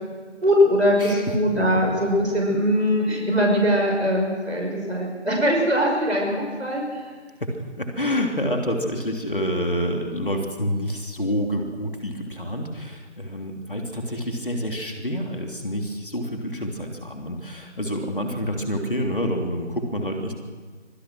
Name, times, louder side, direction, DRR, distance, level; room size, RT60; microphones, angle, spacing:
voice 1, 0.4-7.0 13.6-13.8, equal, 65° right, 0 dB, 5.7 m, -21 dB
voice 2, 7.4-20.3, equal, 50° left, 2 dB, 3.2 m, -28 dB
24.5 x 17.5 x 6.3 m, 1.5 s
figure-of-eight pair, 175°, 35 cm